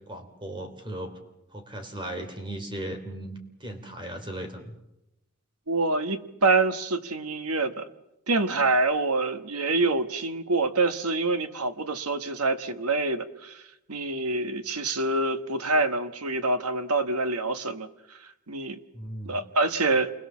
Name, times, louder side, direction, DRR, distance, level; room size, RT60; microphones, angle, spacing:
voice 1, 0.1-1.1 1.5-4.8 18.9-19.4, right 1 dB, 20° right, 3.1 m, -37 dB
voice 2, 5.7-7.9 8.3-13.6 13.9-18.8 19.2-20.1, right 3 dB, 90° right, 1.5 m, -26 dB
28.0 x 21.5 x 7.3 m
head